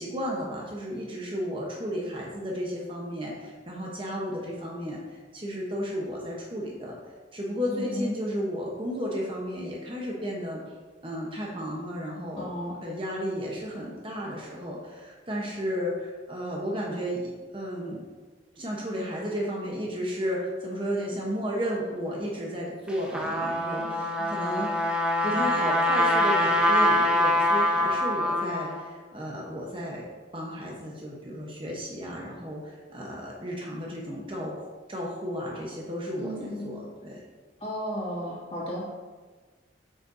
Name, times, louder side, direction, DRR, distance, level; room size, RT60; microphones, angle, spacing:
voice 1, 0.0-7.0 7.3-10.6 11.0-12.5 12.8-18.0 18.5-30.0 30.3-37.2, equal, 30° right, -3 dB, 1.0 m, -33 dB
voice 2, 7.7-8.1 12.4-12.8 36.2-36.6 37.6-38.8, equal, 30° left, -7 dB, 2.3 m, -34 dB
Trumpet, 22.9-28.8, left 1 dB, 5° right, 0.7 m, -24 dB
8.5 x 6.8 x 2.7 m, 1.4 s
head